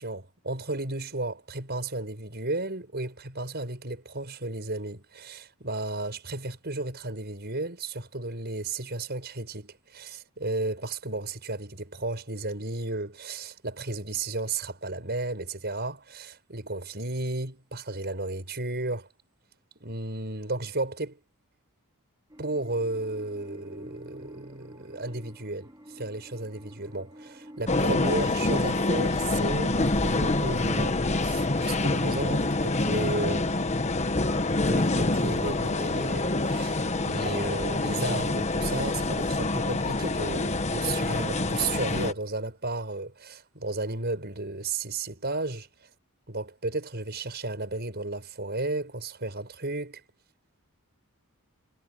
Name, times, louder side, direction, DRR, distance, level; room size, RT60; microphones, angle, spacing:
voice 1, 0.0-19.1 19.8-21.2 22.4-33.5 34.6-45.7 46.3-50.0, right 2 dB, 50° right, 6.1 m, -33 dB
sound 1, 22.3-32.7, equal, 15° right, 3.6 m, -49 dB
sound 2, 27.7-42.1, left 2 dB, 30° left, 1.2 m, -26 dB
head